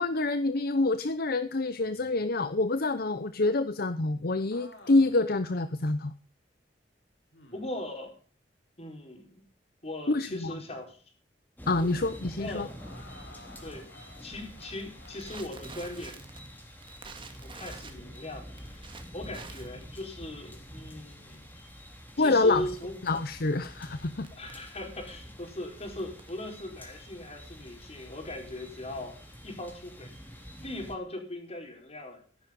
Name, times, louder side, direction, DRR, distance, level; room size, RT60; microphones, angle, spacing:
voice 1, 0.0-6.1 10.1-10.5 11.7-12.7 22.2-22.7 23.0-24.3, left 2 dB, 55° left, 12 dB, 0.8 m, -27 dB
sound 1, 1.8-2.5 4.5-5.3 5.9-6.0 7.3-7.9 10.2-10.9 12.6-15.5 17.7-18.1, left 2 dB, 75° left, 4.6 m, -54 dB
voice 2, 7.5-8.1 8.8-9.4 9.8-11.0 11.8-11.9 12.4-12.7 13.6-13.9 14.2-16.2 17.0-17.1 17.4-21.6 22.2-22.9 24.3-32.2, left 1 dB, 35° left, 3 dB, 4.9 m, -39 dB
sound 2, 11.6-31.0, equal, 10° left, 3.3 m, -47 dB
Crackle, 14.2-28.4, right 4 dB, 30° right, 2.2 m, -51 dB
15.5 x 11.5 x 5.3 m, 0.41 s
head